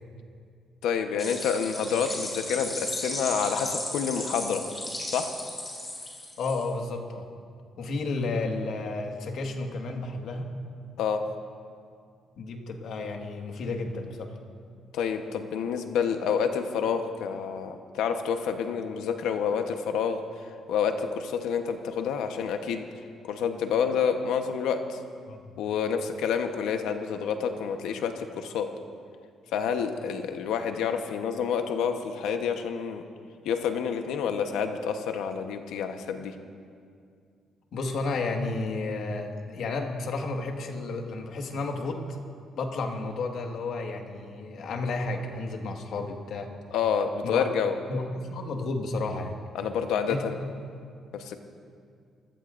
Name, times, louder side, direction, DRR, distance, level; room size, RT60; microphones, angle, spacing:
voice 1, 0.8-4.6 5.1-5.3 11.0-11.2 14.9-20.2 20.7-22.8 23.3-25.0 25.6-28.7 29.5-33.0 33.4-36.3 46.7-47.7 49.5-50.4 51.1-51.4, left 7 dB, 90° left, 6 dB, 1.0 m, -28 dB
sound 1, 1.2-6.7, left 1 dB, 20° left, 4.8 m, -35 dB
voice 2, 6.4-7.3 7.8-10.5 12.4-14.4 25.3-25.6 37.7-42.2 42.5-46.5 47.2-47.4 47.9-49.4 50.1-50.2 50.7-50.8, left 3 dB, 70° left, 3 dB, 1.7 m, -32 dB
24.5 x 16.5 x 2.6 m, 2.2 s
cardioid pair, 90°, 0 cm